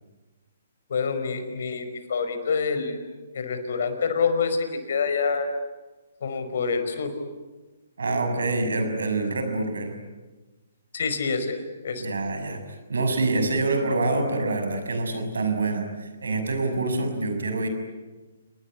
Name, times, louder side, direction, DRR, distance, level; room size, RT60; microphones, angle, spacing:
voice 1, 0.9-3.0 3.3-5.5 6.2-7.1 10.9-12.0, left 5 dB, 65° left, 8 dB, 5.0 m, -27 dB
voice 2, 8.0-10.0 11.9-17.7, right 2 dB, 80° right, 7 dB, 6.4 m, -26 dB
29.0 x 21.0 x 9.8 m, 1.2 s
hypercardioid pair, 135°, 0 cm